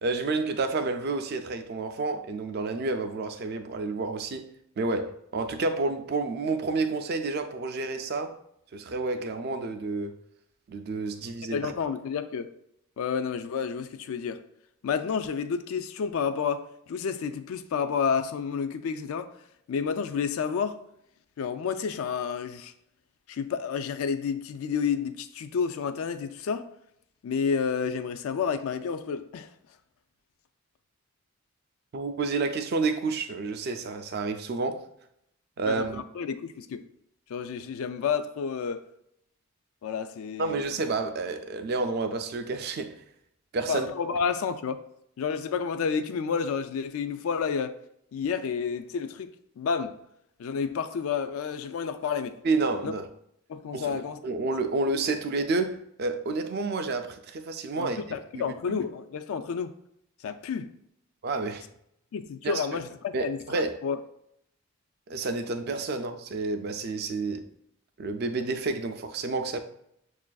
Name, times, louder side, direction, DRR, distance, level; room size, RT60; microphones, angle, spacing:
voice 1, 0.0-4.4 4.8-8.4 8.7-10.2 10.7-11.7 31.9-34.8 35.6-36.0 40.4-42.9 43.5-43.9 52.4-53.1 53.7-58.0 58.3-58.8 61.2-61.7 62.4-62.6 63.1-63.8 65.1-67.5 68.0-69.6, right 3 dB, 45° right, 0.3 m, -30 dB
voice 2, 11.5-12.5 13.0-14.4 14.8-19.3 19.7-20.8 21.4-22.7 23.3-26.7 27.2-29.5 35.6-36.9 37.3-38.8 39.8-40.6 43.7-44.8 45.2-47.8 48.1-50.0 50.4-52.4 52.8-52.9 53.5-54.2 57.8-59.7 60.2-60.7 62.1-64.0, left 6 dB, 70° left, 0.3 m, -30 dB
6.5 x 2.5 x 2.3 m
head